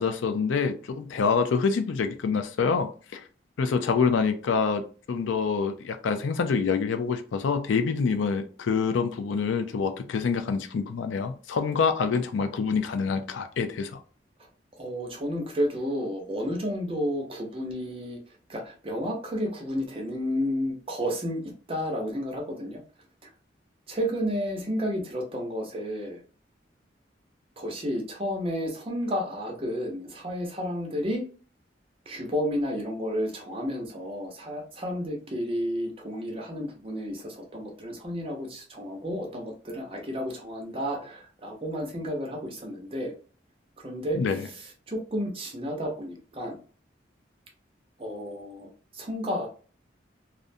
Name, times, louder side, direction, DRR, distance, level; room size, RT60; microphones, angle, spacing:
voice 1, 0.0-3.2 3.6-4.8 5.1-14.0 44.1-44.4, left 5 dB, 90° left, 0.4 m, -26 dB
voice 2, 14.8-18.2 18.5-22.8 23.9-26.2 27.6-31.2 32.1-43.1 43.8-46.6 48.0-48.7 48.9-49.5, equal, 30° right, 0.6 m, -31 dB
2.5 x 2.1 x 2.5 m
head